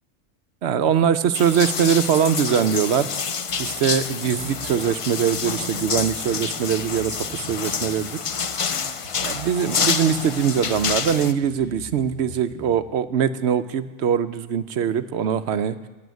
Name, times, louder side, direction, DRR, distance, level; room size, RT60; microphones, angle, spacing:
voice 1, 0.6-3.1 3.6-8.1 9.2-15.8, right 8 dB, 70° right, 11 dB, 0.9 m, -22 dB
sound 1, 1.3-11.3, left 6 dB, 55° left, 0.3 m, -28 dB
Bass guitar, 3.5-4.9 5.3-9.7 10.1-13.1, right 2 dB, 20° left, 2.1 m, -42 dB
16.0 x 8.4 x 9.3 m, 1.2 s
omnidirectional pair, 1.3 m